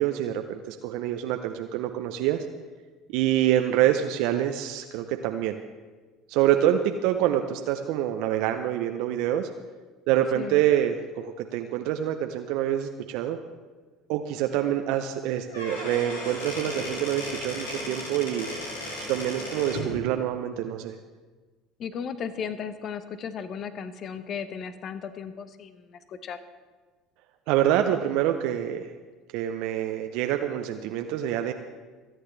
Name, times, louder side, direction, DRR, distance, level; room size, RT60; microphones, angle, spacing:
voice 1, 0.0-2.4 3.1-5.6 6.3-9.5 10.1-13.4 14.1-18.5 19.0-20.9 27.5-28.9 29.3-31.5, right 11 dB, 65° right, 6 dB, 0.7 m, -26 dB
Squeak / Wood, 15.3-19.9, left 1 dB, 85° left, 2.9 m, -35 dB
voice 2, 21.8-26.4, left 7 dB, 50° left, 11 dB, 0.9 m, -35 dB
27.0 x 9.3 x 3.3 m, 1.3 s
hypercardioid pair, 65°, 0 cm